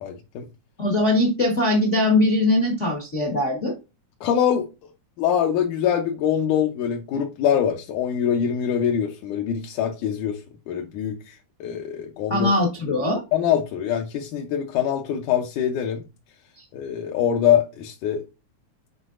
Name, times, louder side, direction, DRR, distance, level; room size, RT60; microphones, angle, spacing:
voice 1, 0.0-0.5 4.2-4.7 5.2-10.4 10.7-11.4 11.6-12.5 13.3-16.0 16.7-18.2, left 9 dB, 80° left, 2.3 m, -24 dB
voice 2, 0.8-3.7 12.3-13.2, left 1 dB, 60° left, 0.7 m, -21 dB
8.2 x 4.6 x 2.5 m
omnidirectional pair, 3.5 m